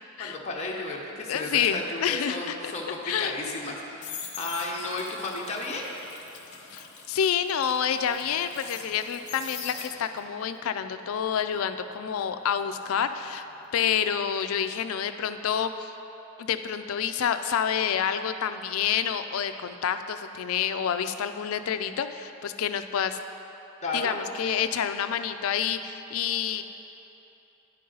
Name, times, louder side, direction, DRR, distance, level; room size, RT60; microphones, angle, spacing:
voice 1, 0.2-5.9 23.8-24.2, left 2 dB, 35° left, -3 dB, 0.8 m, -33 dB
voice 2, 1.3-2.7 3.0-3.3 6.7-13.5 13.7-15.9 16.4-23.2 23.9-26.6, left 8 dB, 75° left, 10 dB, 0.4 m, -28 dB
sound 1, 3.6-10.3 10.7-13.6 13.8-14.2, left 7 dB, 55° left, 0.9 m, -43 dB
10.5 x 5.4 x 3.9 m, 3.0 s
head